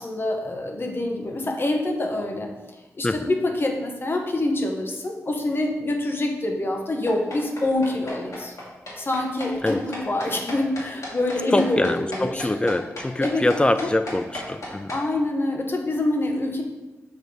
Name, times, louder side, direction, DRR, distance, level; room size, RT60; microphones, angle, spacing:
voice 1, 0.0-2.5 3.0-8.5 9.0-12.5 13.2-13.5 14.9-16.6, left 2 dB, 40° left, 3 dB, 1.0 m, -26 dB
sound 1, 7.1-15.0, left 1 dB, 70° left, 2.2 m, -35 dB
voice 2, 11.5-14.9, left 2 dB, 20° left, 11 dB, 0.3 m, -24 dB
6.9 x 3.1 x 5.3 m, 1.1 s
cardioid pair, 75°, 6 cm